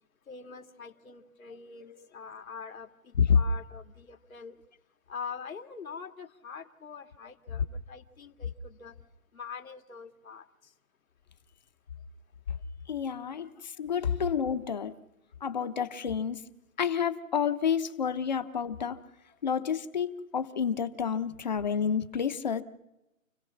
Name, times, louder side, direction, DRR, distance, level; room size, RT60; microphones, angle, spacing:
voice 1, 0.3-4.6 5.1-9.0 9.3-10.5, left 6 dB, 80° left, 4 dB, 2.5 m, -44 dB
voice 2, 12.9-14.9 15.4-16.4 16.8-19.0 19.4-22.6, left 7 dB, 30° left, 9 dB, 1.0 m, -29 dB
29.0 x 17.0 x 5.9 m, 0.94 s
hypercardioid pair, 170°, 41 cm